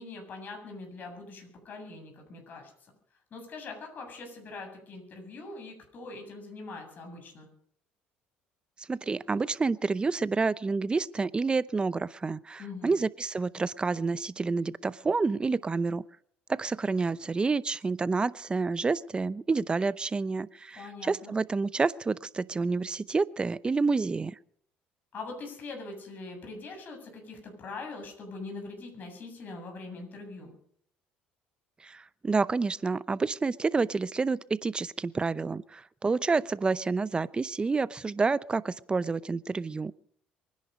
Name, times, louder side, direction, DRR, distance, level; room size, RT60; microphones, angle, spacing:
voice 1, 0.0-2.7 3.3-7.5 12.6-13.0 20.7-21.3 25.1-30.5, left 3 dB, 45° left, 3 dB, 7.5 m, -42 dB
voice 2, 8.9-16.0 16.5-24.3 31.8-39.9, right 4 dB, 25° right, 18 dB, 0.7 m, -29 dB
23.5 x 10.5 x 5.3 m, 0.63 s
supercardioid pair, 85°, 4 cm